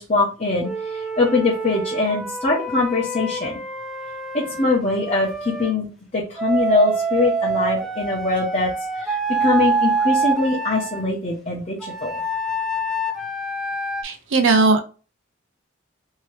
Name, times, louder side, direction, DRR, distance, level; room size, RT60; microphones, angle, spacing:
voice 1, 0.0-3.6 4.3-5.9 6.1-12.2, left 3 dB, 30° left, -6 dB, 0.7 m, -22 dB
Wind instrument woodwind instrument, 0.6-5.7 6.4-11.0 11.8-14.0, right 3 dB, ahead, 0.4 m, -26 dB
voice 2, 14.0-14.8, right 3 dB, 65° right, 7 dB, 0.5 m, -17 dB
2.8 x 2.7 x 3.1 m, 0.35 s
head